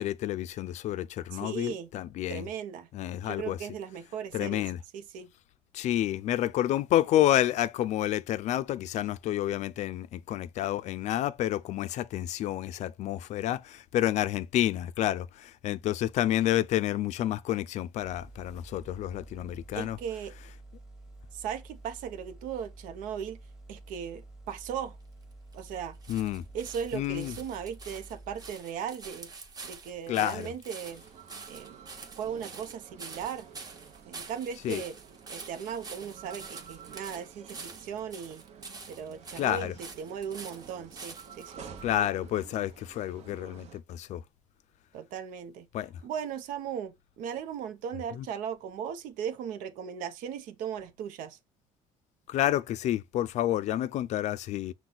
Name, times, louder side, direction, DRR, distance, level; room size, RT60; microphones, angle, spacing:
voice 1, 0.0-2.5 2.9-3.6 4.3-4.8 5.7-20.0 26.1-26.4 26.9-27.3 30.1-30.5 34.6-34.8 39.4-39.7 41.8-44.2 45.7-45.9 48.1-48.3 52.3-54.7, left 13 dB, 60° left, 0.4 m, -29 dB
voice 2, 1.3-1.9 2.3-2.9 3.2-4.7 4.9-5.3 19.7-20.3 21.3-23.4 23.7-25.0 25.5-26.0 26.5-29.3 29.6-31.0 31.5-33.5 34.1-35.0 35.3-38.4 38.9-41.8 44.9-45.7 46.0-51.4, right 8 dB, 80° right, 0.7 m, -37 dB
sound 1, 18.0-28.5, right 2 dB, 5° right, 1.1 m, -50 dB
sound 2, 25.0-41.6 42.3-42.4, right 4 dB, 25° right, 1.2 m, -47 dB
sound 3, 30.9-43.8, right 7 dB, 55° right, 1.0 m, -51 dB
6.0 x 2.3 x 3.9 m
cardioid pair, 110°, 14 cm